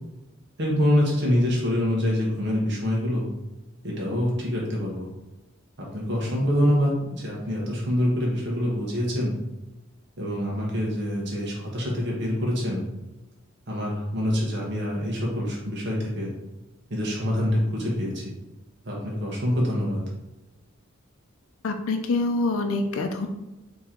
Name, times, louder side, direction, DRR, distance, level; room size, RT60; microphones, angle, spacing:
voice 1, 0.6-3.3 3.8-5.1 5.8-9.4 10.2-12.8 13.7-16.3 16.9-18.2 18.8-20.0, equal, 55° right, -3 dB, 1.0 m, -25 dB
voice 2, 21.6-23.3, left 3 dB, 85° left, 5 dB, 0.5 m, -25 dB
4.3 x 3.0 x 3.7 m, 1.0 s
head